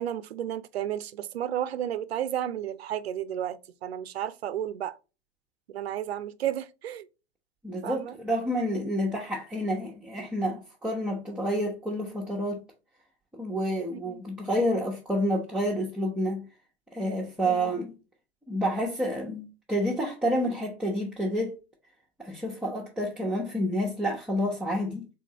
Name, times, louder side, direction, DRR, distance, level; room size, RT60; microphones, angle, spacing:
voice 1, 0.0-5.0 5.7-7.1 7.8-8.2 13.9-14.2 17.4-17.7, right 11 dB, 75° right, 0.5 m, -32 dB
voice 2, 7.6-12.6 13.3-16.5 16.9-18.0 18.5-21.6 22.2-25.1, equal, 5° right, 0.9 m, -29 dB
3.7 x 3.7 x 2.9 m
figure-of-eight pair, 90°, 31 cm